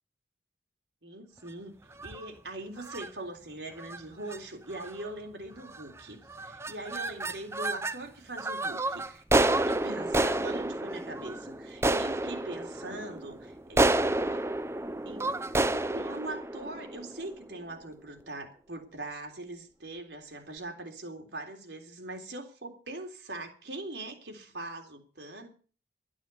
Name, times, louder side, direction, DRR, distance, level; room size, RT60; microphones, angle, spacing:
voice 1, 1.0-14.4 15.1-15.3 15.7-25.5, right 2 dB, 80° right, 3 dB, 3.5 m, -42 dB
sound 1, 1.9-2.3 2.8-3.1 3.8-4.0 4.3-4.4 4.7-5.1 5.7-6.0 6.3-8.0 8.4-17.6, right 2 dB, 15° right, 0.6 m, -30 dB
12.5 x 11.5 x 6.8 m, 0.38 s
head